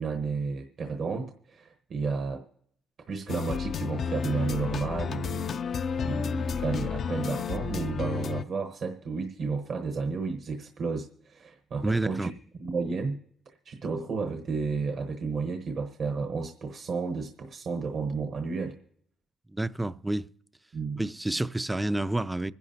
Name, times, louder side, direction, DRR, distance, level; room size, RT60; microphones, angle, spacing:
voice 1, 0.0-2.4 3.1-12.3 12.6-13.1 13.6-18.8 20.7-21.0, right 4 dB, 60° right, 1.1 m, -32 dB
sound 1, 3.3-8.4, left 7 dB, 55° left, 0.4 m, -31 dB
voice 2, 11.8-12.3 19.5-20.3 21.0-22.5, right 1 dB, 10° right, 0.4 m, -29 dB
25.0 x 10.5 x 2.8 m
cardioid pair, 90°, 0 cm